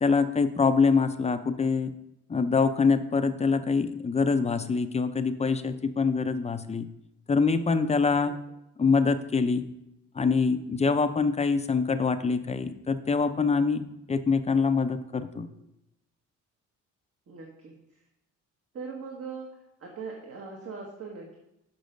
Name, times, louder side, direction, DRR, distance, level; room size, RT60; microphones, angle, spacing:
voice 1, 0.0-1.9 2.3-6.9 7.3-8.4 8.8-9.7 10.2-13.8 14.1-15.5, left 4 dB, 20° left, 10 dB, 0.6 m, -25 dB
voice 2, 17.3-17.7 18.7-19.5 19.8-21.4, right 5 dB, 50° right, -1 dB, 1.5 m, -40 dB
6.8 x 5.5 x 5.2 m, 0.86 s
cardioid pair, 90°, 30 cm